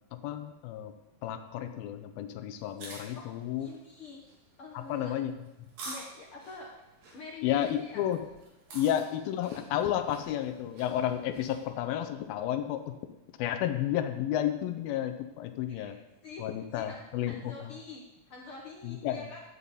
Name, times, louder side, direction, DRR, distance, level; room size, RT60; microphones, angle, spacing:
voice 1, 0.1-0.9 1.2-3.7 4.7-5.3 7.4-8.2 8.7-12.8 13.4-16.0 16.4-17.5 18.8-19.3, left 11 dB, 90° left, 7 dB, 2.6 m, -31 dB
sound 1, 2.6-11.7, right 2 dB, 75° right, 3.9 m, -49 dB
voice 2, 3.6-4.2 4.6-5.1 5.8-6.7 7.1-8.1 8.7-8.8 15.7-16.0 16.2-16.5 16.7-19.4, left 3 dB, 70° left, -1 dB, 1.3 m, -46 dB
12.5 x 8.5 x 4.1 m, 0.99 s
omnidirectional pair, 4.1 m